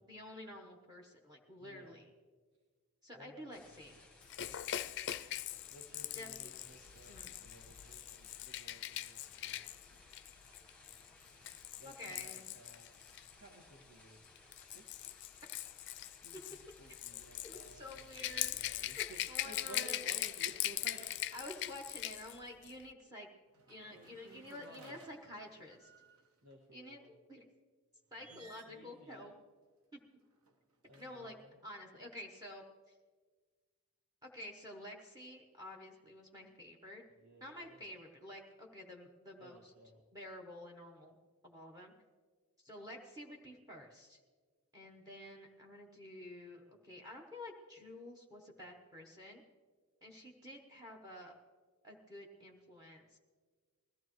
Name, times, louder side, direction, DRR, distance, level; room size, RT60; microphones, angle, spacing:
voice 1, 0.0-2.1 3.0-4.0 6.1-6.3 6.8-7.4 11.8-12.5 16.9-20.1 21.3-23.3 23.7-25.9 26.7-27.5 28.1-29.3 31.0-31.4 31.6-32.9 34.2-37.0 37.4-39.7 40.1-41.2 41.4-41.9 42.6-44.2 44.7-49.4 50.0-51.3 51.8-53.2, left 1 dB, 15° right, 1 dB, 1.1 m, -50 dB
voice 2, 1.6-2.0 3.1-3.5 4.4-4.9 5.7-9.7 11.8-12.9 13.3-14.2 14.6-14.9 16.2-21.4 23.9-25.0 26.4-27.1 28.3-29.3 30.8-31.6 37.2-37.8 39.4-40.0, right 1 dB, 90° right, -3 dB, 1.8 m, -57 dB
sound 1, 3.5-22.0, left 2 dB, 5° left, 1.2 m, -61 dB
Rattle / Rattle (instrument), 4.3-13.3 14.2-22.4 22.6-22.8, left 13 dB, 50° left, 0.4 m, -41 dB
sound 2, 20.3-21.6 23.5-26.5 28.1-28.9 30.1-31.5, right 2 dB, 65° right, 1.1 m, -64 dB
20.5 x 14.5 x 3.1 m, 1.5 s
head